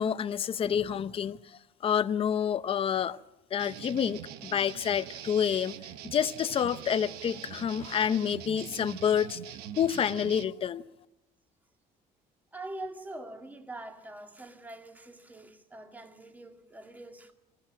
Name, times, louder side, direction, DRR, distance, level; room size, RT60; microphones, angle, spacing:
voice 1, 0.0-1.4 1.8-3.2 3.5-5.8 6.1-10.8, left 8 dB, 35° left, 0.7 m, -28 dB
sound 1, 3.6-10.4, right 10 dB, 90° right, 1.3 m, -43 dB
voice 2, 12.5-17.3, right 2 dB, 10° right, 2.0 m, -44 dB
21.5 x 16.0 x 8.7 m
cardioid pair, 125°, 16 cm